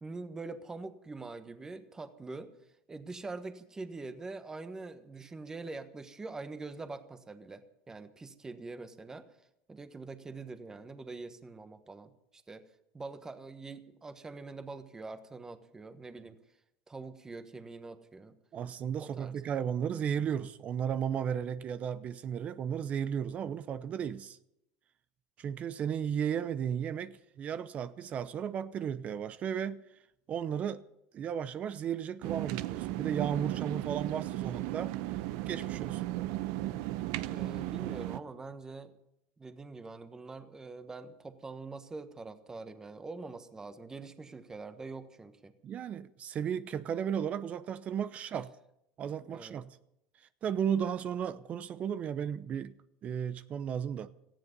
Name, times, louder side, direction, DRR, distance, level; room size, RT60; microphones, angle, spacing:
voice 1, 0.0-2.5 2.9-9.3 9.7-12.7 12.9-16.4 16.9-18.4 19.0-19.6 37.3-38.9 39.4-45.5 48.3-48.4 49.2-49.6, right 3 dB, 15° right, 1.3 m, -44 dB
voice 2, 18.5-24.4 25.4-29.8 30.3-30.8 31.1-35.0 35.5-36.1 45.6-48.5 49.0-49.8 50.4-52.7 53.0-54.1, right 8 dB, 40° right, 0.7 m, -34 dB
sound 1, 32.2-38.2, right 16 dB, 75° right, 0.8 m, -35 dB
18.0 x 14.5 x 5.4 m
supercardioid pair, 110°, 4 cm